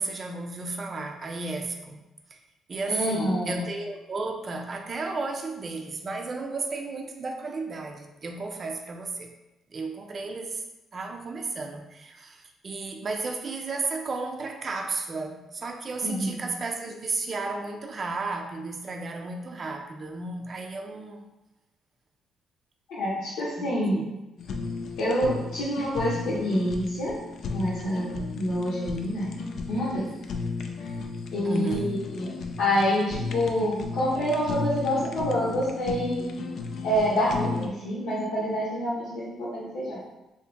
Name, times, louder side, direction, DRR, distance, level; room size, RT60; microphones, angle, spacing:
voice 1, 0.0-2.0 2.3-2.4 2.7-9.3 9.7-10.6 10.9-21.3 23.6-24.0 31.4-32.0, right 3 dB, 40° right, 3 dB, 0.4 m, -33 dB
voice 2, 2.9-3.7 16.0-16.4 22.9-23.9 25.0-27.1 27.5-29.3 29.7-30.1 31.3-32.3 32.6-36.3 36.8-40.0, equal, 85° left, -9 dB, 0.9 m, -27 dB
Fire, 24.4-37.7, left 4 dB, 65° left, 0.3 m, -35 dB
2.8 x 2.6 x 3.4 m, 0.97 s
cardioid pair, 90°, 0 cm